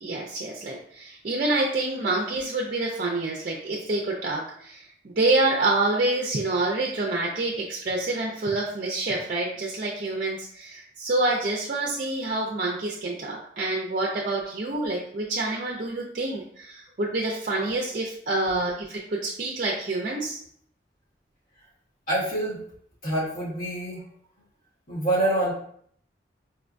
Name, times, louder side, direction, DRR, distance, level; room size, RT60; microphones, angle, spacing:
voice 1, 0.0-20.4, right 2 dB, 50° right, -1 dB, 0.4 m, -27 dB
voice 2, 22.1-22.6 23.0-24.0 24.9-25.5, right 1 dB, 50° left, -8 dB, 1.3 m, -26 dB
4.3 x 2.1 x 2.5 m, 0.63 s
head